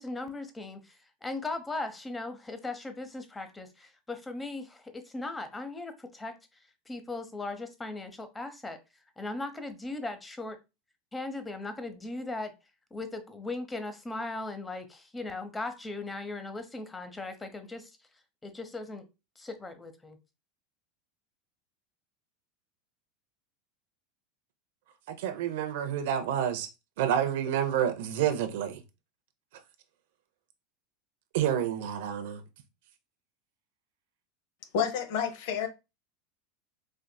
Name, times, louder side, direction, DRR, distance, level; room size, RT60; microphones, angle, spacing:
voice 1, 0.0-6.3 6.9-8.8 9.2-10.6 11.1-12.5 12.9-17.9 18.4-19.0 19.4-20.2, left 2 dB, 15° left, 0.7 m, -38 dB
voice 2, 25.1-26.7 27.0-28.8 31.3-32.4, right 9 dB, 70° right, 0.6 m, -29 dB
voice 3, 34.7-35.7, left 7 dB, 70° left, 0.7 m, -29 dB
4.4 x 2.5 x 2.2 m
hypercardioid pair, 105°, 0 cm